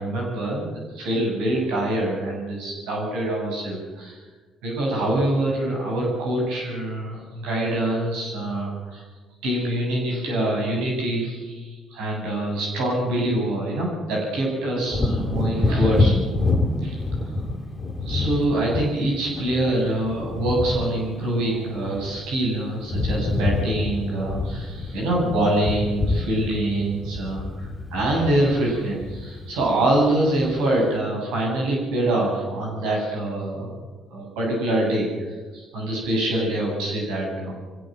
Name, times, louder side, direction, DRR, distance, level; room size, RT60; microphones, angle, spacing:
voice 1, 0.0-4.2 4.6-9.0 9.4-16.2 16.8-17.0 18.1-33.8 34.1-37.5, right 1 dB, 80° right, -1 dB, 7.7 m, -25 dB
Wind / Thunder, 14.9-22.5 22.7-30.0 30.4-30.5, left 2 dB, 30° left, 3.0 m, -27 dB
22.5 x 16.5 x 7.8 m, 1.3 s
hypercardioid pair, 55°, 0 cm